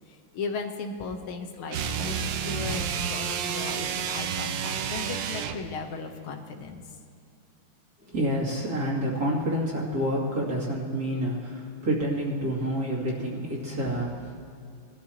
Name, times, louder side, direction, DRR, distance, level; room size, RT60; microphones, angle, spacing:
voice 1, 0.3-6.8, left 4 dB, 80° left, 4 dB, 1.9 m, -36 dB
sound 1, 1.7-5.7, right 7 dB, 70° right, 1.3 m, -30 dB
voice 2, 8.1-14.3, equal, 45° right, -5 dB, 3.1 m, -28 dB
21.0 x 12.5 x 3.0 m, 2.4 s
omnidirectional pair, 2.3 m